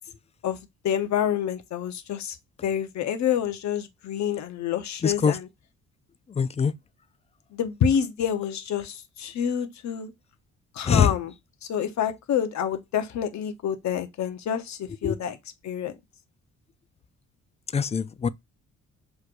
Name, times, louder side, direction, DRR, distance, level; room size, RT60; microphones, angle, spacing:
voice 1, 0.8-2.4 2.6-5.5 7.5-10.1 10.7-11.3 11.7-15.4 15.6-15.9, left 8 dB, 65° left, 0.9 m, -27 dB
voice 2, 5.0-5.3 6.4-6.7 10.9-11.1 15.0-15.1 17.7-18.3, left 6 dB, 20° left, 0.3 m, -22 dB
5.9 x 3.3 x 2.5 m
cardioid pair, 90°, 30 cm